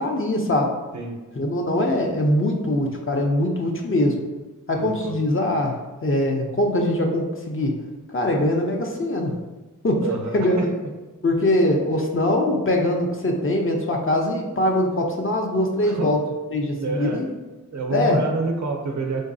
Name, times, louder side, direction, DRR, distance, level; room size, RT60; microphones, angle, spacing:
voice 1, 0.0-0.7 1.4-4.2 4.7-7.7 8.1-9.3 9.8-10.1 10.3-10.8 11.2-16.2 16.5-17.3 17.9-18.2, left 1 dB, 40° left, 1 dB, 0.6 m, -22 dB
voice 2, 4.8-5.2 10.0-10.7 15.8-16.2 16.7-17.2 17.7-19.3, right 3 dB, 60° right, 3 dB, 0.6 m, -28 dB
3.8 x 3.0 x 2.6 m, 1.2 s
wide cardioid pair, 55°, 32 cm